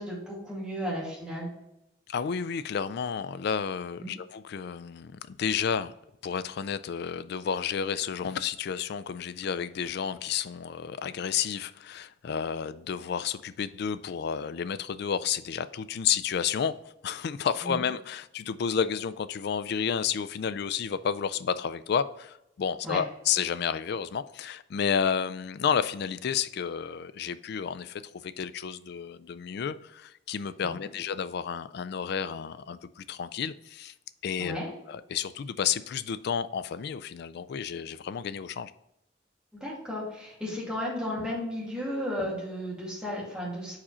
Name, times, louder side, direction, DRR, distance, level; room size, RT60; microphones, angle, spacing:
voice 1, 0.0-1.5 4.0-4.1 17.6-17.7 22.8-23.0 30.6-30.9 34.4-34.7 39.5-43.8, equal, 5° right, 2.2 m, -34 dB
voice 2, 2.1-5.9 6.2-16.7 17.0-33.9 34.2-38.7, left 7 dB, 55° left, 0.3 m, -31 dB
4.8 x 4.3 x 4.8 m
head